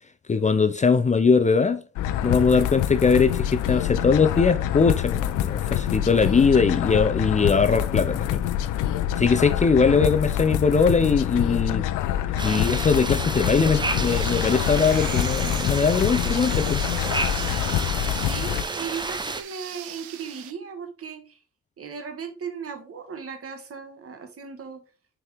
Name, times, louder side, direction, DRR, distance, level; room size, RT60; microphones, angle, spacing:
voice 1, 0.3-1.8 2.2-8.4 9.2-11.8 12.4-16.8, left 5 dB, 25° left, 0.5 m, -21 dB
sound 1, 2.0-18.6, left 11 dB, 90° left, 0.6 m, -26 dB
sound 2, 12.4-19.4, right 3 dB, 15° right, 0.7 m, -31 dB
sound 3, 14.0-20.5, right 12 dB, 75° right, 0.7 m, -40 dB
voice 2, 18.2-21.4 21.8-24.8, right 6 dB, 50° right, 1.5 m, -37 dB
6.2 x 4.6 x 3.5 m
cardioid pair, 90°, 30 cm